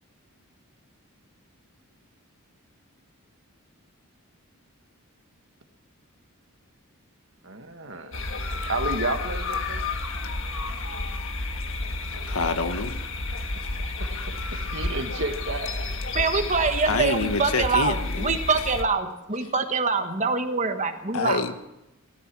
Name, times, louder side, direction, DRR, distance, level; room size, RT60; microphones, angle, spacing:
voice 1, 7.4-8.2 8.7-9.8 13.6-15.8 16.4-16.5, right 2 dB, 60° right, 6 dB, 1.6 m, -32 dB
sound 1, 8.1-18.8, left 2 dB, 60° left, 1.5 m, -31 dB
voice 2, 12.3-13.0 16.9-18.4 21.1-21.6, left 3 dB, 80° left, 9 dB, 1.3 m, -27 dB
voice 3, 16.1-21.4, right 4 dB, 35° right, 7 dB, 1.3 m, -25 dB
17.5 x 13.5 x 6.1 m, 0.89 s
head